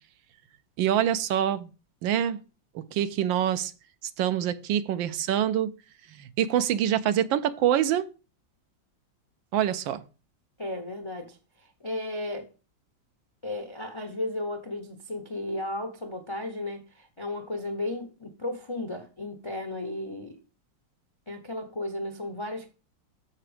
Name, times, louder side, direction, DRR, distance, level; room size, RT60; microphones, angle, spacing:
voice 1, 0.8-1.7 2.0-2.4 2.7-3.7 4.2-5.7 6.1-8.1 9.5-10.0, right 10 dB, 85° right, 1.4 m, -25 dB
voice 2, 10.6-12.5 13.4-20.4 21.3-22.7, left 1 dB, 45° left, 0.3 m, -34 dB
7.0 x 5.8 x 5.0 m
omnidirectional pair, 2.0 m